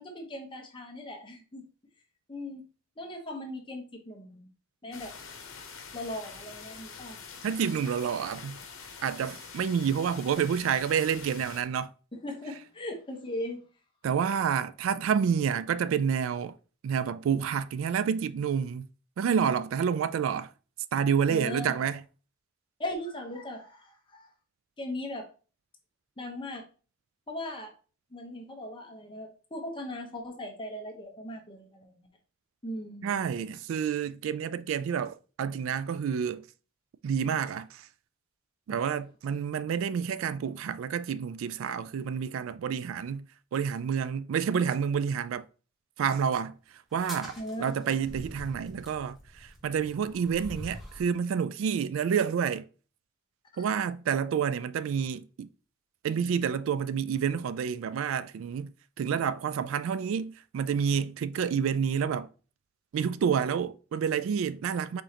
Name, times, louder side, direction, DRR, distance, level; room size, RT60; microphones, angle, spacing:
voice 1, 0.0-1.6 2.3-2.6 3.0-4.5 4.8-5.1 5.9-7.2 12.1-13.6 21.3-21.8 22.8-24.3 24.8-25.3 26.2-26.6 27.3-27.7 28.1-32.1 32.6-33.1 47.4-47.8 53.6-53.7, left 1 dB, 25° left, 0.9 m, -38 dB
sound 1, 4.9-11.6, left 5 dB, 85° left, 0.8 m, -45 dB
voice 2, 7.4-8.6 9.0-11.9 14.0-16.6 16.8-18.9 19.2-20.5 20.9-22.0 33.0-36.5 37.0-37.9 38.7-45.5 46.0-46.6 46.9-52.7 53.6-55.5 56.0-62.3 62.9-65.0, right 7 dB, 75° right, 0.3 m, -29 dB
sound 2, 46.9-51.1, equal, ahead, 1.1 m, -45 dB
4.9 x 3.7 x 2.8 m
head